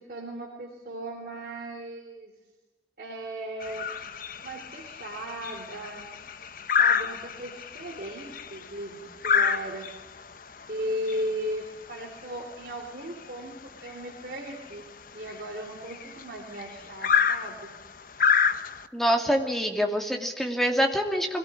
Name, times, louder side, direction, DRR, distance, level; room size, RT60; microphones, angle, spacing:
voice 1, 0.0-2.3 3.0-3.9 4.4-6.1 6.8-9.9 10.7-17.7, equal, 50° right, 1 dB, 3.3 m, -37 dB
sound 1, 3.6-18.9, left 6 dB, 45° left, 1.0 m, -29 dB
voice 2, 18.9-21.4, equal, ahead, 2 dB, 2.5 m, -25 dB
24.0 x 18.0 x 10.0 m, 1.2 s
head